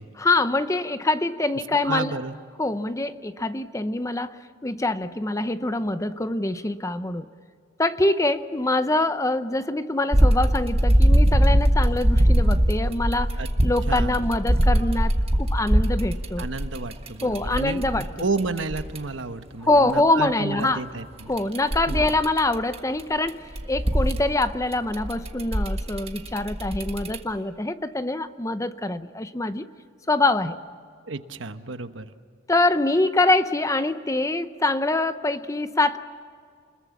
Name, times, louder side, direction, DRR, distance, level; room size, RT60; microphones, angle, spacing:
voice 1, 0.2-2.1 2.6-7.3 7.8-13.4 13.6-15.1 15.4-16.5 17.2-18.1 19.6-20.8 21.3-29.6 30.1-30.6 32.5-36.0, left 2 dB, 15° left, 11 dB, 0.7 m, -24 dB
voice 2, 1.8-2.3 13.4-13.5 13.9-14.2 16.4-21.3 21.9-22.1 31.1-32.1, right 3 dB, 70° right, 9 dB, 1.1 m, -31 dB
sound 1, 10.1-19.0 21.2-23.0 23.3-27.2, equal, 30° right, 1.5 m, -21 dB
30.0 x 21.5 x 7.3 m, 2.2 s
head